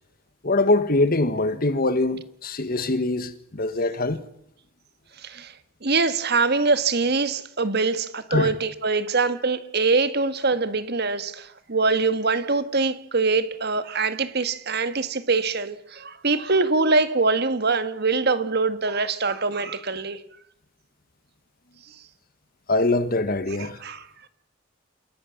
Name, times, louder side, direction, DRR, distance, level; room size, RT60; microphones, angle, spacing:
voice 1, 0.4-4.2 8.3-8.5 22.7-23.8, left 2 dB, 50° left, 1.6 m, -23 dB
voice 2, 5.2-5.5 5.8-20.2 23.6-24.1, right 3 dB, 55° right, 1.7 m, -23 dB
28.0 x 17.0 x 7.3 m
head